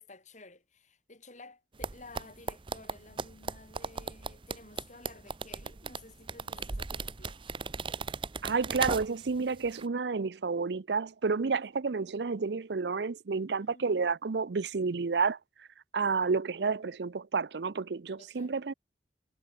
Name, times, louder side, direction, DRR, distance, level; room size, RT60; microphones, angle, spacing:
voice 1, 0.0-7.4 13.6-13.9 18.2-18.5, left 3 dB, 45° left, 5.4 m, -53 dB
sound 1, 1.8-9.4 9.7-9.8, right 4 dB, 30° right, 0.6 m, -37 dB
voice 2, 8.4-15.4 15.9-18.7, right 4 dB, 70° right, 0.6 m, -30 dB
head